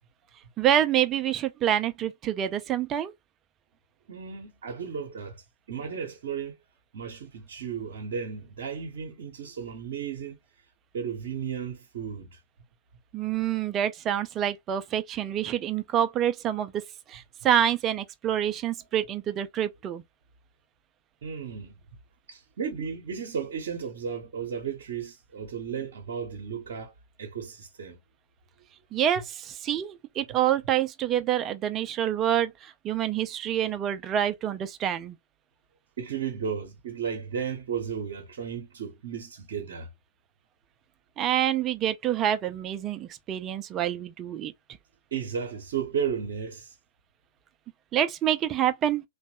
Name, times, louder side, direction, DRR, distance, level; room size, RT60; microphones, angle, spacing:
voice 1, 0.6-3.1 13.1-16.7 17.4-20.0 28.9-29.2 29.6-32.5 32.9-35.1 41.2-44.5 47.9-49.0, right 10 dB, 25° right, 0.4 m, -26 dB
voice 2, 4.1-6.6 6.9-10.4 10.9-12.4 21.2-21.8 22.3-28.0 36.0-39.9 45.1-46.8, right 7 dB, 50° right, 0.8 m, -34 dB
2.9 x 2.2 x 2.8 m
figure-of-eight pair, 110°, 0 cm